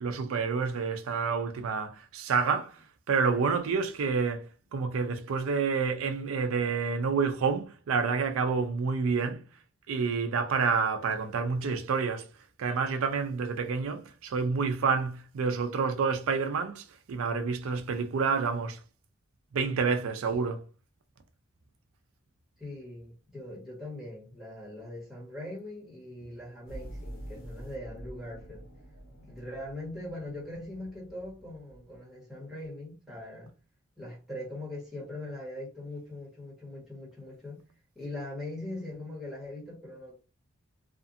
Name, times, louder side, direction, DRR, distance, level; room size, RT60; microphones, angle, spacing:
voice 1, 0.0-2.8 3.1-4.4 4.7-9.4 9.9-12.3 12.6-18.8 19.5-20.6, right 5 dB, 80° right, 0.4 m, -28 dB
voice 2, 22.6-28.6 29.2-33.5 34.0-37.6 37.9-40.1, left 1 dB, ahead, 1.2 m, -41 dB
sound 1, 26.7-32.0, right 1 dB, 65° left, 1.1 m, -47 dB
2.5 x 2.5 x 2.6 m
head